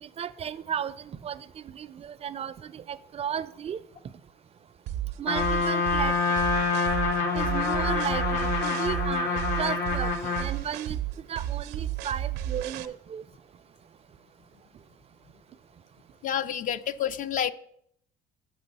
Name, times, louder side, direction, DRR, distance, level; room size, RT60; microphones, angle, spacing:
voice 1, 0.0-1.5 1.7-3.8 5.2-6.4 7.3-11.0 11.3-13.2, right 8 dB, 40° right, 15 dB, 0.4 m, -34 dB
sound 1, 4.9-12.9, right 12 dB, 80° right, 0.6 m, -33 dB
Trumpet, 5.3-10.5, left 4 dB, 75° left, 1.4 m, -26 dB
voice 2, 16.2-17.5, left 9 dB, 50° left, 14 dB, 0.4 m, -29 dB
6.9 x 6.1 x 5.3 m, 0.70 s
cardioid pair, 110°, 17 cm